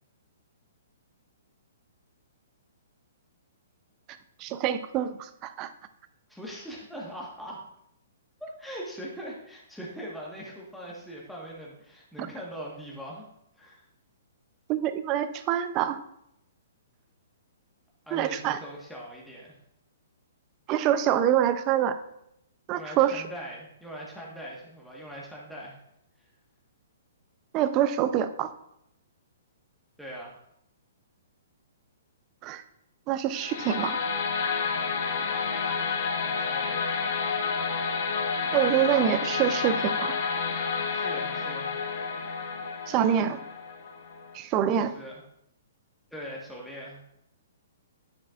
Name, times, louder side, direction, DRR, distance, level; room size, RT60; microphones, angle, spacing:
voice 1, 4.4-5.7 12.2-12.3 14.7-16.0 18.1-18.6 20.7-22.0 22.7-23.2 27.5-28.5 32.4-32.6 33.1-34.0 38.5-40.1 42.9-43.4 44.3-44.9, right 10 dB, 30° right, 11 dB, 0.6 m, -25 dB
voice 2, 6.3-7.6 8.4-13.2 13.6-13.8 18.1-19.6 22.7-25.8 30.0-30.4 36.2-36.8 40.9-41.7 44.8-45.2 46.1-47.0, equal, ahead, -5 dB, 1.4 m, -41 dB
sound 1, 33.3-44.4, left 5 dB, 55° left, 1.1 m, -30 dB
9.7 x 7.2 x 2.5 m, 0.77 s
hypercardioid pair, 135°, 0 cm